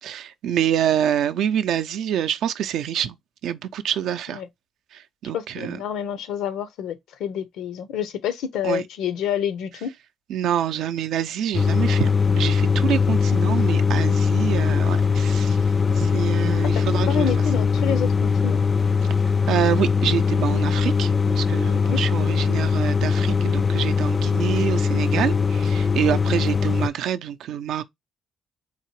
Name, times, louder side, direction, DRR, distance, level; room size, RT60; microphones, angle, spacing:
voice 1, 0.0-3.2 3.4-4.4 4.9-5.8 8.6-8.8 10.3-15.6 15.9-17.3 19.5-27.8, right 10 dB, 80° right, 0.4 m, -26 dB
voice 2, 5.3-9.9 16.7-18.6 21.8-22.0, left 8 dB, 85° left, 0.6 m, -28 dB
sound 1, 11.5-26.9, left 5 dB, 35° left, 0.3 m, -21 dB
4.1 x 2.8 x 3.0 m
cardioid pair, 90°, 0 cm